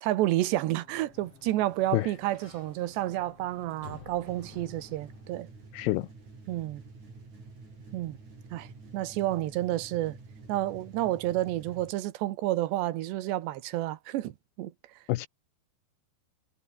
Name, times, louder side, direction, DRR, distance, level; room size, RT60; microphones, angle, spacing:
voice 1, 0.0-5.5 6.5-6.8 7.9-8.2 8.5-8.7 8.9-10.2 10.5-14.3 14.6-14.7, right 15 dB, 80° right, 3.3 m, -30 dB
Sliding door, 0.6-5.5, left 5 dB, 35° left, 4.1 m, -52 dB
sound 1, 4.3-11.9, right 3 dB, 40° right, 8.4 m, -49 dB
voice 2, 5.7-6.1 15.1-15.3, left 18 dB, 80° left, 2.6 m, -27 dB
omnidirectional pair, 5.1 m